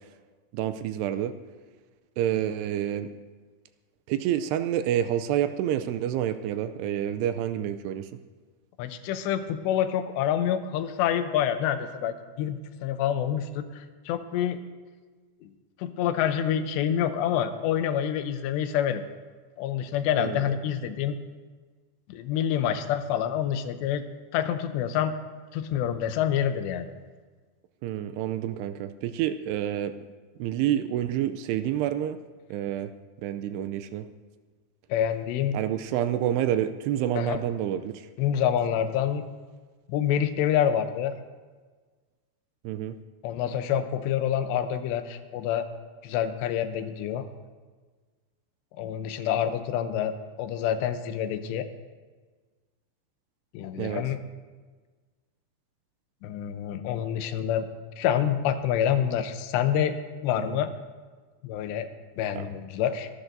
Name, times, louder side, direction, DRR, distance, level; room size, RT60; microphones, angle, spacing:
voice 1, 0.5-1.4 2.2-3.1 4.1-8.1 20.2-20.5 27.8-29.9 30.4-32.2 32.5-32.9 33.2-34.1 35.5-38.1 42.6-42.9 53.8-54.1 60.4-60.6 62.4-62.5, right 11 dB, 80° right, 10 dB, 2.6 m, -28 dB
voice 2, 8.8-14.6 15.4-15.5 15.8-19.0 19.6-21.2 22.1-24.0 24.3-25.1 25.5-26.9 34.9-35.6 37.2-37.4 38.2-39.2 39.9-41.2 43.2-45.7 46.0-47.3 48.8-51.7 53.5-54.2 56.2-57.7 58.0-59.9 60.2-60.7 61.4-61.9 62.2-63.1, left 9 dB, 85° left, 9 dB, 2.9 m, -27 dB
25.0 x 11.5 x 2.6 m, 1.4 s
omnidirectional pair, 4.9 m